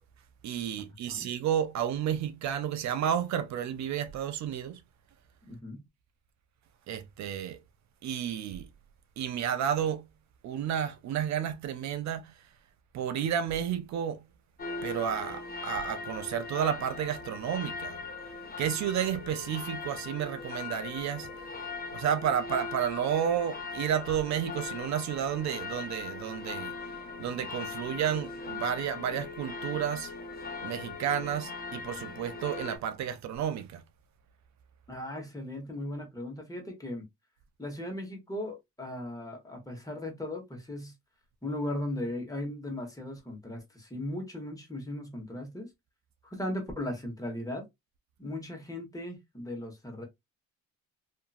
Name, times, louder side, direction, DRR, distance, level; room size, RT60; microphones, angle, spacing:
voice 1, 0.4-4.8 6.9-7.6 8.0-8.7 9.2-10.1 10.4-12.3 12.9-14.3 14.8-18.0 18.6-21.5 21.9-26.7 27.2-30.1 30.6-33.8, right 9 dB, 65° right, 0.5 m, -31 dB
voice 2, 5.4-5.8 34.9-37.0 37.6-40.9 41.4-45.7 46.2-47.6 48.2-50.0, left 1 dB, 10° left, 1.3 m, -37 dB
sound 1, 14.6-32.8, left 4 dB, 30° left, 0.6 m, -40 dB
2.8 x 2.5 x 2.4 m
cardioid pair, 90°, 30 cm